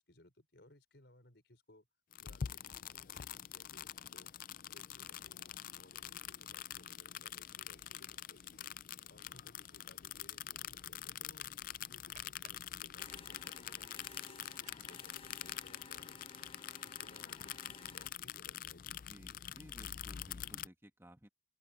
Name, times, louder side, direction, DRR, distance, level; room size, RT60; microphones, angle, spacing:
voice 1, 0.0-1.9 2.2-4.3 4.7-8.7 9.1-11.5 11.8-16.2 16.6-19.0, left 1 dB, 65° left, 5.5 m, -63 dB
sound 1, 2.1-20.7, left 10 dB, 50° left, 0.4 m, -46 dB
sound 2, 5.9-15.1, right 5 dB, 45° right, 6.8 m, -68 dB
sound 3, 13.0-18.1, left 4 dB, 30° left, 1.2 m, -56 dB
voice 2, 19.1-21.3, equal, 15° right, 2.0 m, -57 dB
open air
head